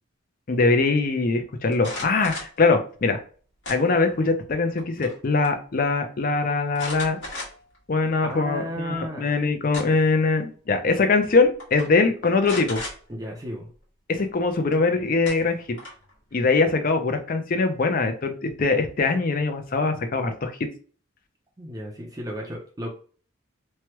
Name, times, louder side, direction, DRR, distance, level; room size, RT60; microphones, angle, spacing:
voice 1, 0.5-3.2 3.7-7.2 7.9-12.8 14.1-15.8 16.3-20.5, left 3 dB, 45° left, 7 dB, 0.5 m, -22 dB
sound 1, 1.7-2.6 3.6-4.2 4.6-5.2 5.4-5.5 6.7-7.8 8.3-8.4 9.4-10.1 11.1-11.3 11.6-11.9 12.4-13.0 14.7-14.8 15.2-16.1, left 2 dB, 65° left, 1.4 m, -36 dB
voice 2, 8.2-9.3 13.1-13.7 21.6-22.9, equal, 15° right, -1 dB, 0.5 m, -34 dB
3.1 x 2.2 x 2.9 m, 0.41 s
head